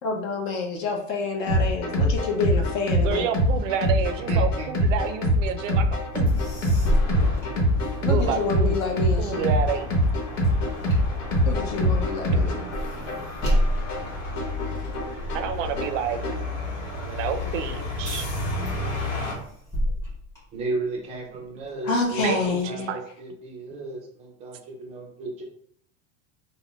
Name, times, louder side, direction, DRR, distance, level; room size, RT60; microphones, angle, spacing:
voice 1, 0.0-3.3 8.0-9.5 11.4-12.6 21.8-22.9, left 3 dB, 40° left, 2 dB, 0.6 m, -28 dB
sound 1, 1.5-16.5, equal, 90° left, 1.0 m, -24 dB
voice 2, 3.0-5.9 6.1-6.3 8.0-8.8 9.2-9.9 10.9-11.0 12.3-12.8 15.3-16.2 17.1-18.2 22.2-23.0, right 8 dB, 85° right, 9 dB, 0.5 m, -29 dB
voice 3, 4.3-4.7 20.5-25.4, right 2 dB, 20° right, -1 dB, 0.4 m, -34 dB
sound 2, 6.1-19.3, left 2 dB, 65° left, 1.0 m, -34 dB
sound 3, 6.3-8.4 8.8-17.5 18.0-18.4 18.7-21.1 21.6-22.6, equal, 10° left, 0.9 m, -31 dB
3.6 x 2.1 x 2.3 m, 0.65 s
supercardioid pair, 150°, 37 cm